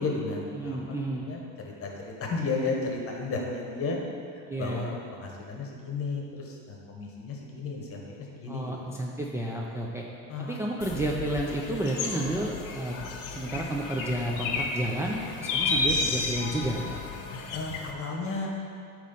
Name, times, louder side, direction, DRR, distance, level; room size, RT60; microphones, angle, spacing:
voice 1, 0.0-1.0 1.2-4.0 4.3-8.0 8.4-8.9 10.3-10.6 17.5-18.5, left 3 dB, 40° left, 0 dB, 1.3 m, -33 dB
voice 2, 0.5-1.3 4.5-4.9 8.5-10.0 10.5-13.0 13.3-16.8, right 1 dB, 10° right, -3 dB, 0.5 m, -31 dB
sound 1, 10.8-17.9, left 3 dB, 70° left, 0.9 m, -32 dB
8.2 x 3.2 x 5.5 m, 2.4 s
cardioid pair, 110°, 34 cm